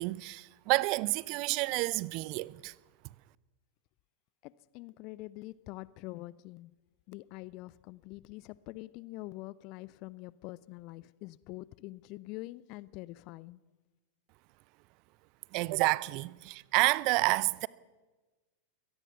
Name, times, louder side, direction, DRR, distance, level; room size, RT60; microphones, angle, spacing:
voice 1, 0.0-2.7 15.5-17.7, right 23 dB, 45° right, 0.6 m, -29 dB
voice 2, 4.4-6.7 7.1-13.6, left 19 dB, 40° left, 0.7 m, -45 dB
23.5 x 18.0 x 6.9 m
figure-of-eight pair, 90°, 0 cm